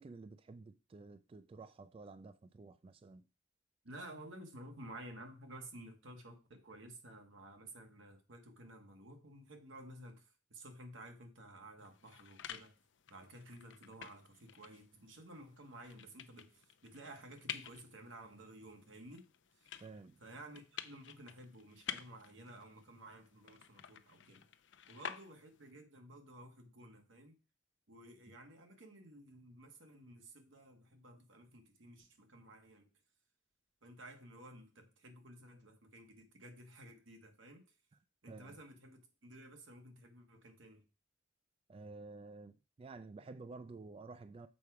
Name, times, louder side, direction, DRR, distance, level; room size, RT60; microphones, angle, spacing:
voice 1, 0.0-3.3 19.8-20.2 28.3-28.4 37.9-38.0 38.3-38.6 41.7-44.5, right 3 dB, 30° right, 0.3 m, -52 dB
voice 2, 3.8-12.7 13.1-19.3 20.2-24.4 24.9-27.3 27.9-32.9 33.8-37.6 38.2-40.8, right 1 dB, 90° right, 1.4 m, -54 dB
sound 1, 11.8-25.7, left 9 dB, 70° left, 0.5 m, -51 dB
7.0 x 4.7 x 4.8 m
head